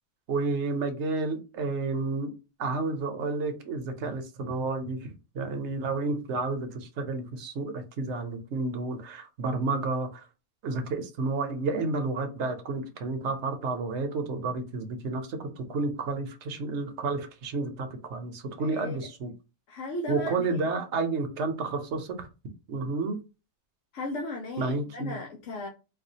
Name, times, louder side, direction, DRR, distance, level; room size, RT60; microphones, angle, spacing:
voice 1, 0.3-2.3 2.6-5.1 5.3-10.2 10.6-19.3 20.1-22.3 22.7-23.2 24.6-25.2, right 3 dB, 70° right, 1.0 m, -31 dB
voice 2, 18.6-19.1 19.7-20.5 23.9-25.7, left 2 dB, 85° left, 1.1 m, -36 dB
4.1 x 2.3 x 2.7 m
omnidirectional pair, 1.3 m